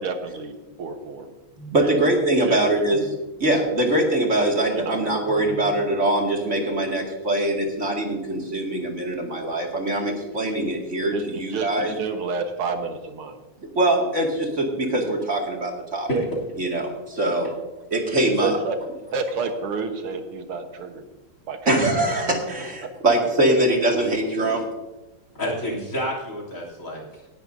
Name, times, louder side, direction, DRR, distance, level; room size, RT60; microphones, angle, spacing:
voice 1, 0.0-1.3 1.8-2.0 2.4-2.8 4.7-5.5 11.1-13.4 18.4-18.8 19.1-21.1 21.5-21.8 22.8-22.9, right 4 dB, 85° right, 6 dB, 2.2 m, -30 dB
voice 2, 1.6-3.1 3.4-12.0 13.7-16.1 16.6-17.5 17.9-18.6 21.7-24.6, right 1 dB, 35° right, 0 dB, 2.4 m, -23 dB
voice 3, 25.4-27.2, equal, 35° left, -1 dB, 3.5 m, -28 dB
18.5 x 11.0 x 2.7 m, 1.1 s
omnidirectional pair, 2.3 m